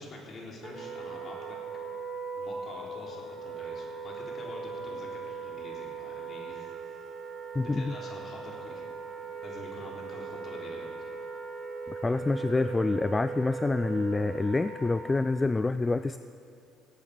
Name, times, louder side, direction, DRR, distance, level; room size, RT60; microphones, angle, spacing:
voice 1, 0.0-1.6 2.3-7.1 7.7-8.8 9.4-10.9, left 2 dB, 45° left, -2 dB, 3.9 m, -45 dB
Wind instrument woodwind instrument, 0.6-15.5, right 4 dB, 40° right, 1.9 m, -39 dB
voice 2, 7.6-7.9 12.0-16.2, left 3 dB, 20° left, 12 dB, 0.3 m, -27 dB
18.0 x 8.6 x 7.0 m, 2.6 s
supercardioid pair, 85°, 0 cm